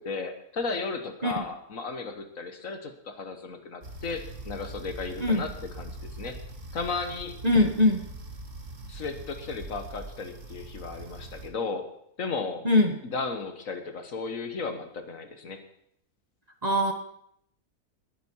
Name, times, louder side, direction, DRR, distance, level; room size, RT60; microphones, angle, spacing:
voice 1, 0.0-5.5 5.8-5.9 6.2-6.4 6.7-7.4 8.9-11.9 12.2-12.6 13.0-15.6, left 4 dB, 60° left, 7 dB, 1.7 m, -34 dB
sound 1, 3.8-11.5, right 2 dB, 55° right, 2.1 m, -42 dB
voice 2, 7.4-8.0 12.6-13.0 16.6-16.9, left 1 dB, 30° right, 4 dB, 1.2 m, -22 dB
20.0 x 9.2 x 4.6 m, 0.72 s
omnidirectional pair, 1.6 m